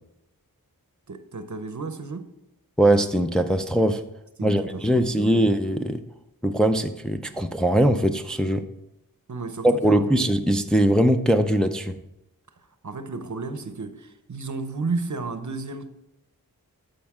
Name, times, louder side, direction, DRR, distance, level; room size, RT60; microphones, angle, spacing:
voice 1, 1.1-2.3 4.4-5.4 9.3-10.2 12.8-15.9, right 3 dB, 50° right, 0.8 m, -33 dB
voice 2, 2.8-4.0 4.4-6.0 6.4-8.6 9.6-12.0, right 1 dB, ahead, 0.5 m, -21 dB
13.0 x 5.3 x 3.6 m
wide cardioid pair, 50°, 37 cm